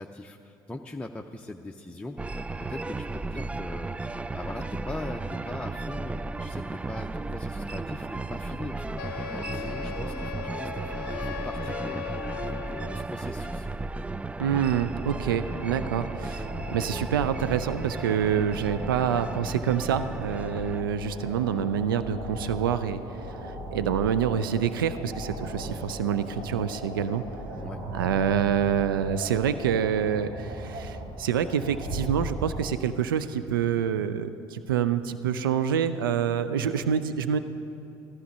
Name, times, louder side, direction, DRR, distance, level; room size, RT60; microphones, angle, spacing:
voice 1, 0.0-2.4 2.7-13.7 27.6-27.8, left 2 dB, 10° left, 1 dB, 0.7 m, -41 dB
sound 1, 2.2-20.8, right 3 dB, 10° right, 0.3 m, -35 dB
Wind instrument woodwind instrument, 9.0-13.1, left 11 dB, 75° left, 0.5 m, -38 dB
voice 2, 14.4-23.0 23.3-27.2 27.9-37.4, right 8 dB, 80° right, 12 dB, 0.5 m, -27 dB
sound 2, 15.0-32.7, right 1 dB, 65° right, 2.7 m, -38 dB
14.0 x 13.5 x 5.4 m, 2.8 s
hypercardioid pair, 60°, 11 cm